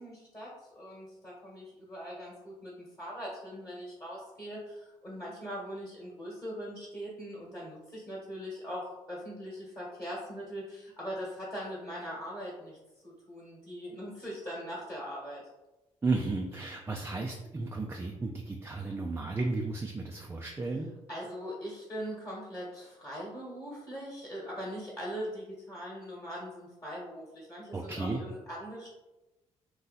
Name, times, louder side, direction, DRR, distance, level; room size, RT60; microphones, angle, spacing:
voice 1, 0.0-12.8 13.0-15.5 21.1-28.9, equal, 20° left, -5 dB, 1.2 m, -41 dB
voice 2, 16.0-20.9 27.7-28.2, right 3 dB, 20° right, 1 dB, 0.4 m, -33 dB
2.7 x 2.3 x 3.9 m, 1.0 s
cardioid pair, 75°, 13 cm